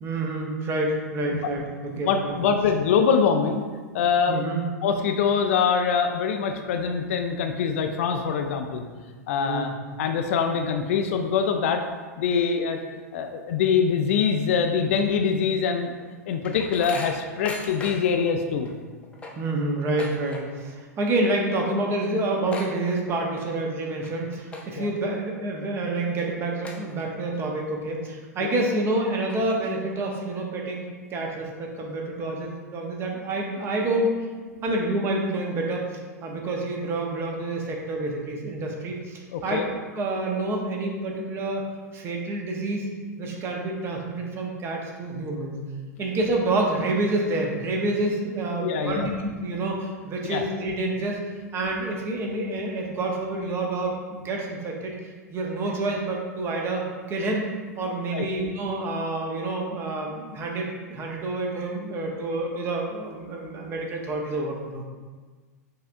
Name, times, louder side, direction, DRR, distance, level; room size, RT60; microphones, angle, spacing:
voice 1, 0.0-2.3 4.3-4.6 9.4-9.7 19.4-30.8 31.1-34.1 34.6-39.6 39.9-41.7 41.9-42.9 43.2-45.6 46.0-51.2 51.5-54.9 55.3-57.4 57.8-64.9, right 2 dB, 25° right, 0 dB, 0.8 m, -28 dB
voice 2, 2.1-3.6 3.9-4.4 4.8-8.8 9.3-9.7 10.0-11.8 12.2-12.8 13.1-15.9 16.3-18.7 24.8-24.9 39.3-39.7 48.6-49.1 50.3-50.4 58.1-58.2, left 6 dB, 55° left, 5 dB, 0.4 m, -24 dB
sound 1, 15.8-18.2 18.6-18.7 19.0-20.7 21.0-21.4 21.7-21.8 22.0-23.4 23.9-24.1 24.5-25.0 25.5-25.6 26.2-26.3 26.6-27.4 27.8-27.9 28.6-28.7 29.1-30.0, left 3 dB, 15° left, 0.6 m, -39 dB
5.6 x 3.3 x 2.6 m, 1.4 s
figure-of-eight pair, 100°, 9 cm